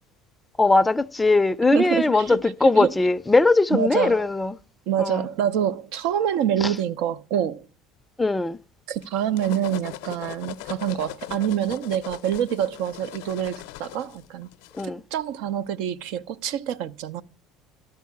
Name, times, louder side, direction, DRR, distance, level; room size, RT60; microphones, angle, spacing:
voice 1, 0.6-4.6 5.0-5.3 6.6-6.7 8.2-8.6 14.8-15.0, left 3 dB, 10° left, 0.4 m, -20 dB
voice 2, 1.7-2.9 3.7-4.3 4.9-7.6 8.9-14.5 15.1-17.2, right 10 dB, 75° right, 0.5 m, -26 dB
sound 1, 9.0-14.9, left 16 dB, 85° left, 0.5 m, -39 dB
12.5 x 4.6 x 8.4 m
supercardioid pair, 115°, 0 cm